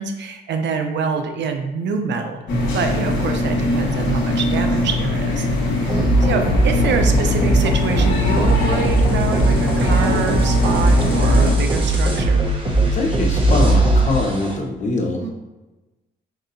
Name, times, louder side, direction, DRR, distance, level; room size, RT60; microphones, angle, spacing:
voice 1, 0.0-2.4 2.7-5.5 5.8-12.4 15.2-15.3, right 5 dB, 65° right, 5 dB, 0.5 m, -26 dB
sound 1, 2.5-11.6, left 2 dB, 65° left, 1.3 m, -21 dB
sound 2, 5.9-14.6, right 2 dB, 25° right, 0.8 m, -19 dB
voice 2, 12.9-15.3, left 2 dB, 40° left, 1 dB, 0.8 m, -23 dB
5.3 x 2.7 x 2.6 m, 1.1 s
cardioid pair, 90°, 20 cm